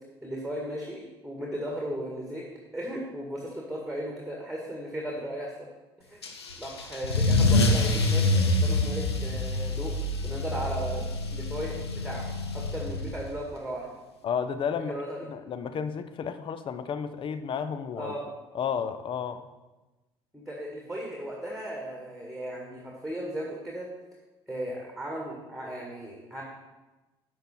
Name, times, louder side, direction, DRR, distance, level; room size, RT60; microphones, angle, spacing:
voice 1, 0.2-2.4 2.7-5.7 6.0-6.2 6.6-9.9 10.2-11.8 12.0-12.3 12.5-13.9 14.9-15.2 18.0-18.3 20.3-23.9 24.5-26.4, right 1 dB, ahead, -1 dB, 1.9 m, -36 dB
Car / Engine starting / Accelerating revving vroom, 6.2-13.4, left 2 dB, 80° left, 0.8 m, -26 dB
voice 2, 14.2-14.9 15.3-18.1 18.5-19.5, left 7 dB, 40° left, 12 dB, 0.7 m, -32 dB
11.5 x 6.4 x 4.4 m, 1.1 s
figure-of-eight pair, 55°, 13 cm